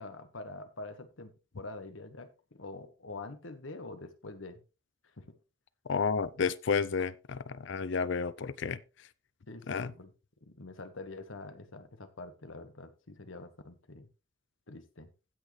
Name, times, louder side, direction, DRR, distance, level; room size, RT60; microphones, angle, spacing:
voice 1, 0.0-4.6 5.2-5.3 9.5-10.1 10.4-14.1 14.7-15.1, left 2 dB, 85° left, 1.5 m, -45 dB
voice 2, 5.9-8.8 9.7-9.9, left 5 dB, 65° left, 0.5 m, -31 dB
16.0 x 6.3 x 3.2 m
head